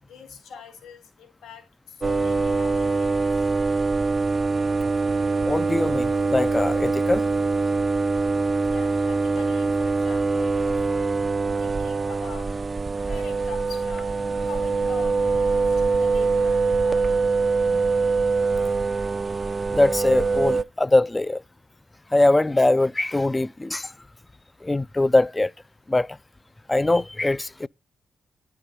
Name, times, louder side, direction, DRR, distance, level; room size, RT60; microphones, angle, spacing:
voice 1, 0.0-3.5 8.6-11.1 11.6-12.6 12.9-17.2, left 7 dB, 85° left, 4.5 m, -44 dB
sound 1, 2.0-20.6, right 4 dB, 40° right, 0.6 m, -23 dB
voice 2, 5.5-7.3 17.7-17.8 19.7-21.4 22.1-23.9 24.6-25.5 25.9-26.2 26.7-27.7, left 2 dB, 20° left, 0.5 m, -22 dB
11.0 x 6.8 x 5.6 m
supercardioid pair, 45°, 0 cm